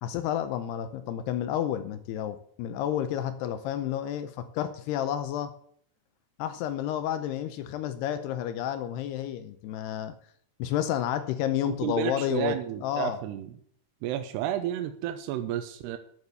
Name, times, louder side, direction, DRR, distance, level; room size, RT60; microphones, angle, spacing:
voice 1, 0.0-5.5 6.4-10.1 10.6-13.2, left 10 dB, 80° left, 11 dB, 2.4 m, -30 dB
voice 2, 11.6-13.5 14.0-16.0, right 11 dB, 80° right, 8 dB, 2.5 m, -31 dB
9.7 x 8.7 x 6.9 m, 0.62 s
omnidirectional pair, 5.4 m